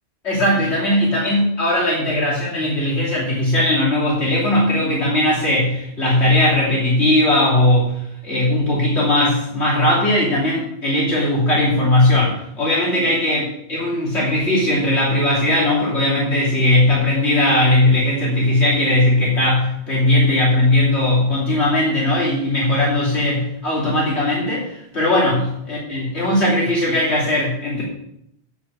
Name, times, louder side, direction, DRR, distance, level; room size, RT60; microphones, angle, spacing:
voice 1, 0.2-7.9 8.2-13.4 13.7-25.4 25.7-27.8, left 1 dB, 75° left, -6 dB, 3.2 m, -18 dB
8.0 x 7.0 x 8.5 m, 0.76 s
omnidirectional pair, 1.1 m